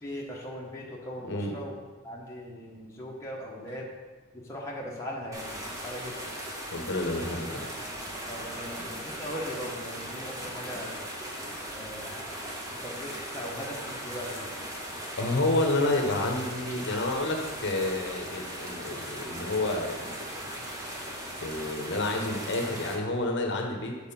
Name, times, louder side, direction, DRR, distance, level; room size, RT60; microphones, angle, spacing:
voice 1, 0.0-1.8 2.0-3.9 4.3-5.5 5.8-6.2 8.3-10.9 11.7-12.4 12.7-14.5, equal, 15° left, -4 dB, 1.1 m, -39 dB
sound 1, 5.3-23.0, equal, 15° right, 1.2 m, -38 dB
voice 2, 6.7-7.7 15.2-20.5 21.4-24.0, left 2 dB, 55° left, 2 dB, 1.0 m, -29 dB
6.9 x 4.8 x 5.5 m, 1.4 s
head